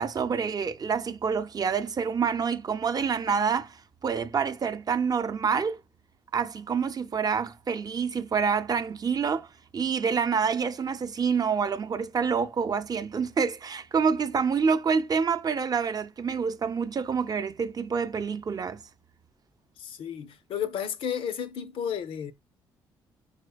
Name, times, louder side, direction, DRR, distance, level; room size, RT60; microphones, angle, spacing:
voice 1, 0.0-5.8 6.3-9.5 9.7-18.8, right 6 dB, 40° right, 0.6 m, -27 dB
voice 2, 19.8-22.3, left 8 dB, 70° left, 0.6 m, -32 dB
4.9 x 4.3 x 2.3 m
supercardioid pair, 55°, 10 cm